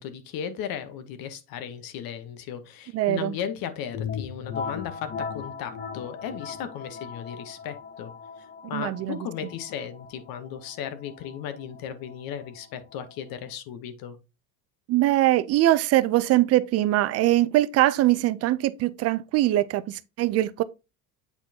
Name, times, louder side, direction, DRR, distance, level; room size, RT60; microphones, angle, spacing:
voice 1, 0.0-8.1 8.7-14.2, left 8 dB, 55° left, 1.0 m, -36 dB
voice 2, 2.9-3.3 8.7-9.2 14.9-20.6, right 15 dB, 40° right, 0.5 m, -22 dB
sound 1, 3.9-13.5, left 6 dB, 25° left, 0.7 m, -38 dB
8.2 x 4.3 x 2.8 m
supercardioid pair, 125°, 42 cm